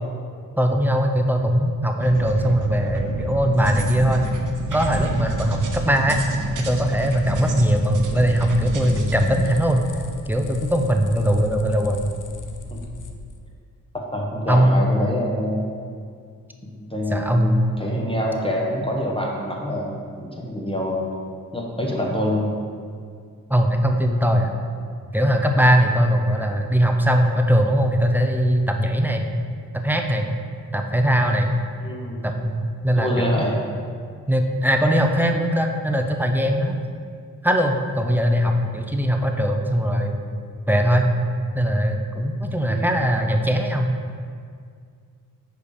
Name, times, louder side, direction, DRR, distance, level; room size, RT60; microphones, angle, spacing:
voice 1, 0.6-4.3 4.7-6.2 6.7-9.9 10.3-12.0 14.5-14.9 17.1-17.5 23.5-24.5 25.1-29.3 29.7-30.3 30.7-31.5 32.2-33.4 34.3-36.8 37.4-40.2 40.7-41.1 41.5-43.9, equal, 5° right, 3 dB, 0.6 m, -20 dB
sound 1, 2.0-9.6, right 2 dB, 60° right, 0.8 m, -29 dB
sound 2, 5.9-13.4, left 3 dB, 55° left, 0.7 m, -39 dB
voice 2, 14.1-15.7 16.8-21.0 21.5-22.5 31.8-32.2 33.0-33.6 42.6-42.9, left 1 dB, 15° left, -2 dB, 1.1 m, -26 dB
5.1 x 4.8 x 4.9 m, 2.2 s
cardioid pair, 65°, 36 cm